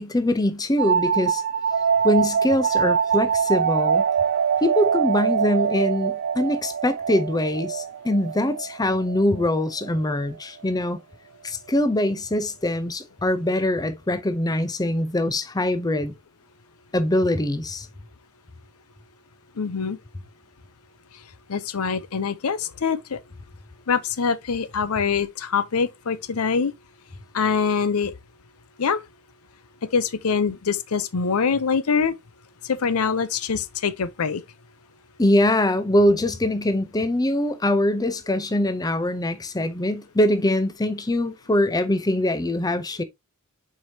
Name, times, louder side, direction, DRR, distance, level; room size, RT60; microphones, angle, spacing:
voice 1, 0.0-1.4 2.0-4.0 4.6-11.0 11.4-16.1 16.9-17.9 35.2-43.0, left 1 dB, 15° left, 0.6 m, -23 dB
sound 1, 0.8-10.2, right 7 dB, 55° right, 0.4 m, -24 dB
voice 2, 19.6-20.0 21.5-23.2 23.9-26.7 27.3-28.1 28.8-29.0 29.9-32.1 32.6-34.4, left 5 dB, 75° left, 0.6 m, -24 dB
7.7 x 4.7 x 2.7 m
head